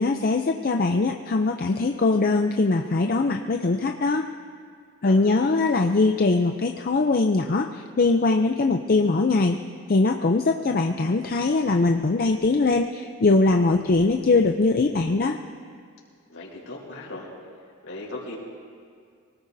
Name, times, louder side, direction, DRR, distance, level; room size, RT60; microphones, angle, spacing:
voice 1, 0.0-4.3 5.0-9.6 9.9-15.4, left 3 dB, 40° left, 3 dB, 0.5 m, -21 dB
voice 2, 5.0-5.6 16.3-17.3 17.8-18.4, left 2 dB, 65° left, -4 dB, 4.1 m, -38 dB
25.0 x 18.5 x 2.7 m, 2.1 s
head